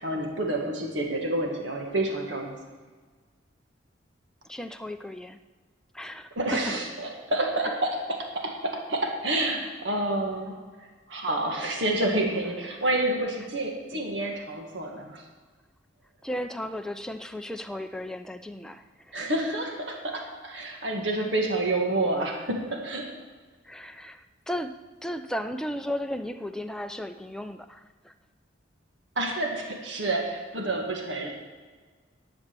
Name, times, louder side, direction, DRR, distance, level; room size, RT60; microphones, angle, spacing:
voice 1, 0.0-2.6 6.3-15.2 19.1-23.1 29.2-31.3, right 2 dB, 70° right, 1 dB, 1.9 m, -29 dB
voice 2, 4.4-5.4 5.9-6.6 16.2-19.3 23.6-24.7 25.0-28.1, equal, 5° left, 7 dB, 0.5 m, -35 dB
11.0 x 8.1 x 6.9 m, 1.4 s
head